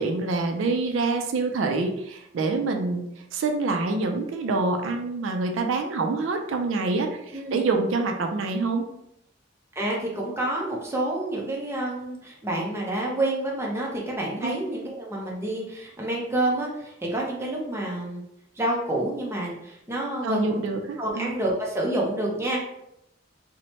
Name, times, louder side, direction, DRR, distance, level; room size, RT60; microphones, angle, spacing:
voice 1, 0.0-3.1 3.3-8.8 14.4-14.6 20.2-21.3, right 3 dB, 80° right, 4 dB, 0.3 m, -26 dB
voice 2, 9.8-18.2 18.6-20.6 21.0-22.6, right 1 dB, 15° right, -3 dB, 0.6 m, -28 dB
3.0 x 2.1 x 2.8 m, 0.81 s
head